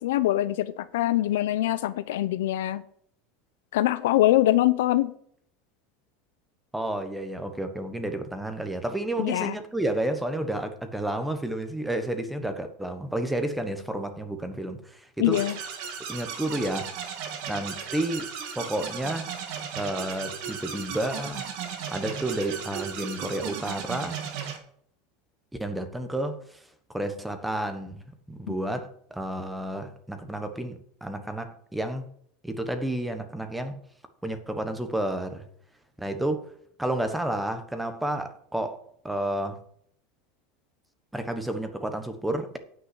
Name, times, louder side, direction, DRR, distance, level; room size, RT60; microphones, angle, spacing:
voice 1, 0.0-2.8 3.7-5.1 9.2-9.5 15.2-15.5, left 14 dB, 90° left, 0.6 m, -23 dB
voice 2, 6.7-15.4 16.1-16.9 17.5-18.3 18.5-19.3 19.7-21.4 21.9-24.2 25.6-26.6 26.9-28.0 28.3-32.0 32.4-33.8 34.2-35.5 36.0-36.5 36.8-38.8 39.0-39.6 41.1-42.6, right 1 dB, 5° right, 1.2 m, -31 dB
Synth Loop - Wobble Wars, 15.3-24.6, right 7 dB, 60° right, 2.1 m, -36 dB
9.5 x 5.6 x 8.0 m
supercardioid pair, 150°, 0 cm